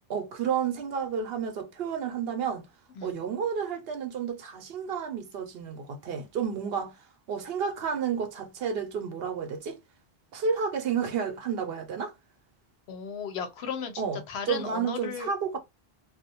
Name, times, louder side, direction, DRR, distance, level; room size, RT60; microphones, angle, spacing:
voice 1, 0.1-2.6 3.0-6.9 7.3-9.8 10.3-12.1 14.0-15.6, right 6 dB, 70° right, 0.8 m, -31 dB
voice 2, 12.9-14.0 14.3-15.3, left 6 dB, 80° left, 0.9 m, -35 dB
2.5 x 2.0 x 2.7 m
omnidirectional pair, 1.1 m